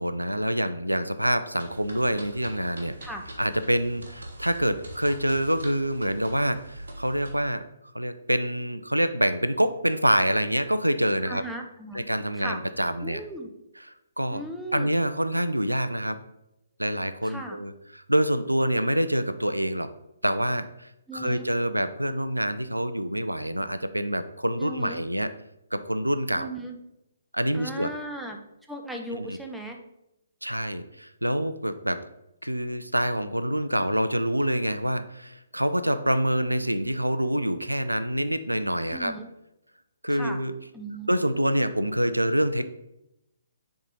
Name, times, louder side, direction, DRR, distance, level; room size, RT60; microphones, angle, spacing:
voice 1, 0.0-3.0 3.4-7.6 7.9-11.4 11.9-13.2 13.8-13.9 14.2-14.4 14.7-16.2 16.8-19.9 20.2-25.3 25.7-26.5 27.3-27.9 29.1-29.4 30.4-32.0 32.4-39.1 40.0-40.5 41.1-42.6, equal, 85° right, 12 dB, 0.4 m, -26 dB
sound 1, 1.6-7.3, right 1 dB, 60° right, 1.4 m, -43 dB
voice 2, 11.3-12.0 12.4-12.6 13.0-13.5 14.3-14.9 17.2-17.6 21.1-21.5 24.6-25.1 26.4-26.8 27.5-28.4 28.7-29.8 38.9-39.3 40.1-40.4 40.7-41.1, right 1 dB, ahead, 2 dB, 0.6 m, -37 dB
7.2 x 3.7 x 3.9 m, 0.85 s
figure-of-eight pair, 135°, 0 cm